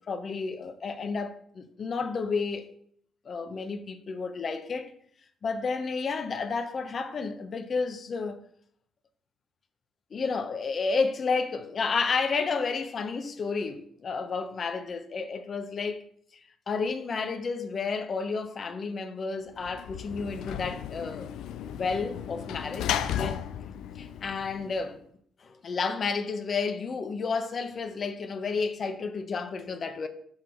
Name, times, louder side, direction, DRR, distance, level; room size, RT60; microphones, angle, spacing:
voice 1, 0.1-2.7 3.2-4.9 5.4-8.4 10.1-16.0 16.7-21.3 21.6-23.4 23.9-25.0 25.4-30.1, left 4 dB, 45° left, 0.9 m, -31 dB
Sliding door / Slam, 19.6-25.0, left 10 dB, 85° left, 0.4 m, -35 dB
6.0 x 5.7 x 4.5 m
cardioid pair, 90°, 0 cm